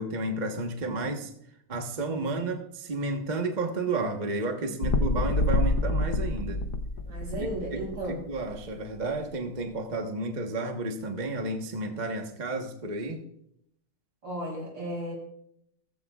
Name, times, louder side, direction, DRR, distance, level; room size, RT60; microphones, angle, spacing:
voice 1, 0.0-1.3 1.7-6.6 7.4-7.8 8.3-13.2, right 2 dB, 30° right, 3 dB, 1.0 m, -32 dB
voice 2, 4.6-5.1 7.0-8.2 14.2-15.1, right 1 dB, 60° right, -3 dB, 6.8 m, -35 dB
sound 1, 4.8-8.6 9.1-9.2, left 2 dB, 60° left, 1.2 m, -27 dB
17.0 x 14.5 x 2.4 m, 0.73 s
omnidirectional pair, 2.3 m